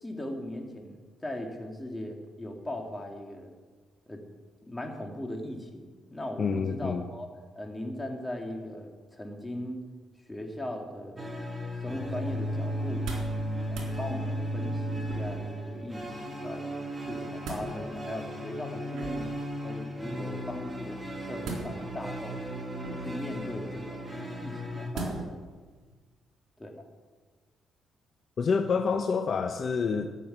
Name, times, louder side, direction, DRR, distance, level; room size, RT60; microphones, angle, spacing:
voice 1, 0.0-3.5 4.1-4.2 4.7-9.8 10.3-11.2 11.8-13.1 13.7-16.8 17.1-19.3 19.6-22.4 23.0-24.1 24.4-25.5 26.6-26.7, left 1 dB, 15° left, 2 dB, 2.6 m, -39 dB
voice 2, 6.4-7.0 28.4-30.1, left 5 dB, 50° left, 7 dB, 0.8 m, -27 dB
sound 1, 11.2-24.9, equal, 15° right, 2.3 m, -35 dB
sound 2, 12.8-13.4 13.7-13.9 15.1-15.5 17.0-17.7 18.9-19.4 21.4-22.0 22.8-23.3 24.9-25.4 25.9-26.0, right 3 dB, 75° right, 4.0 m, -38 dB
14.0 x 6.9 x 8.9 m, 1.4 s
cardioid pair, 90°, 0 cm